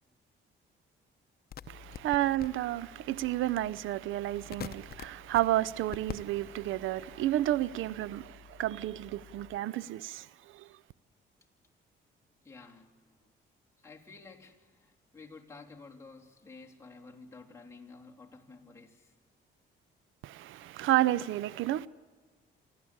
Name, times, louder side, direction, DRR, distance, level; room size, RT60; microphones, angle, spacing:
sound 1, 1.5-9.6, left 8 dB, 50° left, 0.9 m, -48 dB
voice 1, 1.7-10.3 10.5-10.7 20.2-21.9, right 14 dB, 85° right, 0.6 m, -31 dB
voice 2, 12.4-13.3 13.8-19.1, left 4 dB, 15° left, 3.5 m, -52 dB
28.0 x 12.5 x 8.7 m
cardioid pair, 90°, 20 cm